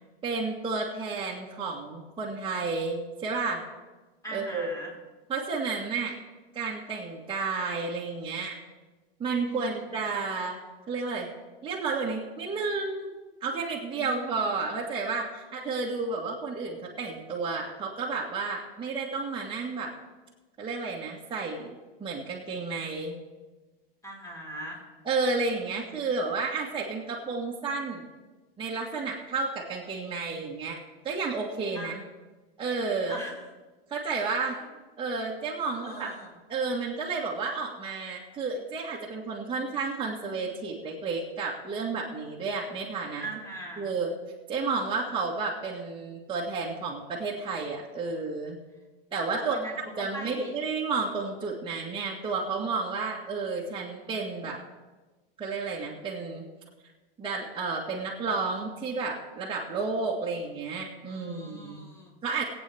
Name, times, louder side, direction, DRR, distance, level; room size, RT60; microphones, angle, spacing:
voice 1, 0.2-3.6 4.3-4.8 5.3-6.2 6.5-8.6 9.2-10.6 10.9-11.3 11.6-13.1 13.4-19.9 20.6-21.7 22.0-23.2 25.0-28.1 28.6-30.8 31.0-32.0 32.6-33.2 33.9-34.6 35.0-36.1 36.5-43.2 43.8-44.1 44.5-48.6 49.1-49.6 50.0-54.6 55.4-56.4 57.2-61.9 62.2-62.4, right 4 dB, 15° right, -5 dB, 1.8 m, -31 dB
voice 2, 4.2-4.9 9.5-9.7 13.9-14.4 24.0-24.8 31.7-32.0 33.1-33.3 34.4-34.7 35.6-36.3 43.2-43.9 49.4-49.8 50.1-50.5 61.1-62.1, right 1 dB, 10° left, -1 dB, 4.1 m, -40 dB
22.0 x 8.5 x 3.5 m, 1.2 s
hypercardioid pair, 120°, 29 cm